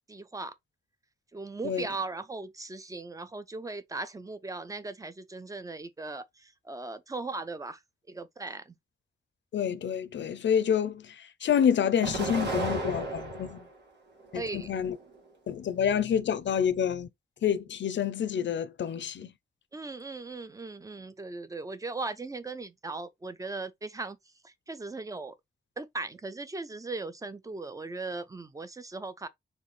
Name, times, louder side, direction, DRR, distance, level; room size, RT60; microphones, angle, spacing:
voice 1, 0.1-0.6 1.3-7.8 8.1-8.8 14.3-14.7 19.7-24.2 24.4-25.3 25.8-29.3, right 3 dB, 20° right, 0.4 m, -38 dB
voice 2, 9.5-13.7 14.3-15.0 15.5-17.1 17.4-19.3, left 8 dB, 85° left, 0.6 m, -28 dB
Explosion, 12.0-13.7 14.2-15.1, right 2 dB, 75° right, 1.8 m, -34 dB
4.4 x 3.1 x 3.1 m
wide cardioid pair, 170°, 18 cm